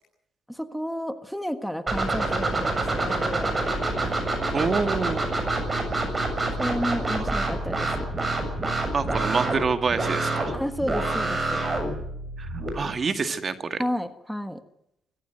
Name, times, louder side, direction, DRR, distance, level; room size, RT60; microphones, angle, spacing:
voice 1, 0.5-4.2 6.6-7.9 10.5-11.6 13.8-14.6, equal, ahead, 9 dB, 1.5 m, -31 dB
sound 1, 1.9-12.7, right 2 dB, 25° right, 7.3 m, -27 dB
voice 2, 4.5-5.3 7.2-7.3 8.9-10.6 12.4-12.5 12.7-13.8, right 5 dB, 40° right, 8 dB, 2.0 m, -27 dB
23.5 x 14.5 x 9.2 m, 0.82 s
cardioid pair, 90°, 0 cm